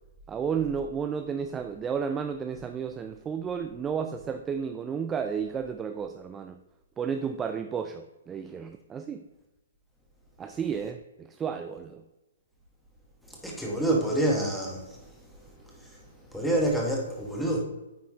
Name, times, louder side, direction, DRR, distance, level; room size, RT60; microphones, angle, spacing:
voice 1, 0.3-6.6 7.0-9.2 10.4-12.0, right 7 dB, 15° right, 0.3 m, -32 dB
voice 2, 13.4-15.0 16.3-17.6, right 1 dB, ahead, 1.3 m, -27 dB
9.3 x 4.2 x 3.0 m
figure-of-eight pair, 125°, 0 cm